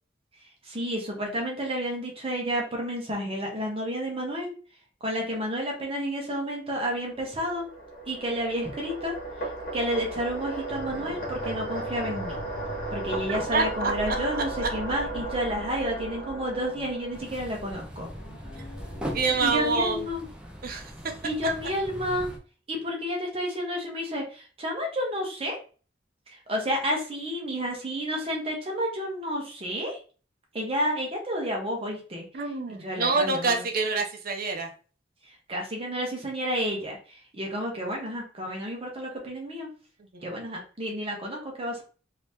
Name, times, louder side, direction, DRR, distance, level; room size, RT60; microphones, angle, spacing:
voice 1, 0.6-4.5 5.0-7.7 8.1-12.4 12.9-18.1 19.4-20.3 21.2-22.3 22.7-25.6 26.3-30.0 30.5-32.2 32.8-33.6 35.5-39.7 40.2-41.8, equal, 30° right, 0 dB, 0.9 m, -31 dB
sound 1, 7.0-17.7, right 2 dB, 55° left, 1.3 m, -35 dB
sound 2, 10.7-13.8 14.1-17.2 18.0-20.0, equal, 75° left, 1.0 m, -45 dB
voice 2, 13.5-14.2 18.6-18.7 19.1-20.1 20.6-20.9 32.3-34.7 40.0-40.3, right 3 dB, 55° right, 4 dB, 0.6 m, -27 dB
sound 3, 17.1-22.4, equal, 5° right, 0.6 m, -40 dB
2.8 x 2.8 x 3.4 m, 0.38 s
head